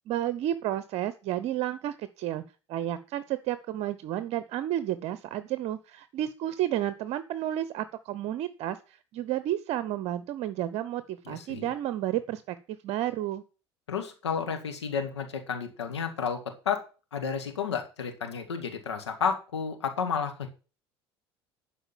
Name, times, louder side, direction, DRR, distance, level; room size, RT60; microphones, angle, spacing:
voice 1, 0.1-2.4 2.7-13.4, right 12 dB, 50° right, 14 dB, 0.8 m, -31 dB
voice 2, 11.3-11.7 13.9-16.4 16.7-16.8 17.1-20.5, left 6 dB, 75° left, 6 dB, 1.9 m, -31 dB
12.0 x 5.0 x 7.1 m, 0.33 s
figure-of-eight pair, 65°, 14 cm